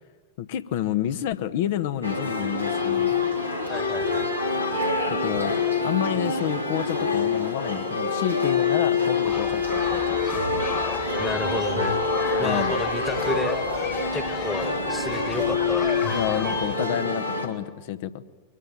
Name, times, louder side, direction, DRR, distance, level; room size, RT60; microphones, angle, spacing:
voice 1, 0.4-3.2 5.1-5.6 5.8-10.0 10.3-10.9 12.4-12.7 16.1-18.3, left 11 dB, 50° left, 12 dB, 1.2 m, -29 dB
sound 1, 2.0-17.5, left 4 dB, 90° left, 3.6 m, -26 dB
voice 2, 3.7-4.3 11.2-12.0 12.4-13.6 14.1-15.9, left 2 dB, 10° left, 9 dB, 1.6 m, -31 dB
sound 2, 9.2-16.8, left 8 dB, 35° left, 2.1 m, -35 dB
24.0 x 23.5 x 9.0 m, 1.3 s
figure-of-eight pair, 90°, 0 cm